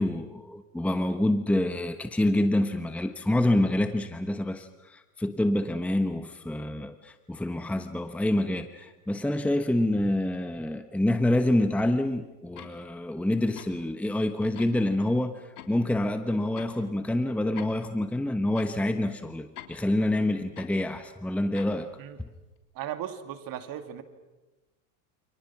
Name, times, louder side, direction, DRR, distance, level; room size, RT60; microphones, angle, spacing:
voice 1, 0.0-21.9, left 1 dB, 5° left, 9 dB, 1.1 m, -27 dB
sound 1, 12.6-12.8 13.6-13.8 14.6-14.8 15.6-15.7 16.6-16.8 17.6-17.8 18.6-18.7 19.6-19.8 20.6-20.8 21.6-21.8, left 11 dB, 90° left, 3.6 m, -45 dB
voice 2, 22.7-24.0, right 10 dB, 50° right, 8 dB, 2.7 m, -36 dB
29.0 x 27.0 x 6.0 m, 1.1 s
supercardioid pair, 110°, 45 cm